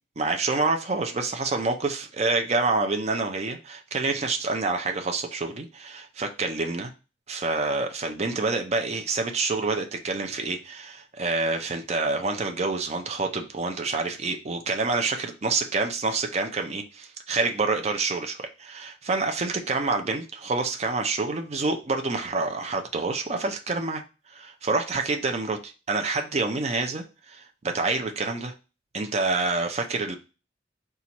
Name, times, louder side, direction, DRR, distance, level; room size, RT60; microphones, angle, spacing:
voice 1, 0.2-6.9 7.3-24.0 24.3-28.5 28.9-30.2, right 3 dB, 35° right, 4 dB, 0.5 m, -27 dB
4.4 x 2.4 x 4.0 m, 0.31 s
head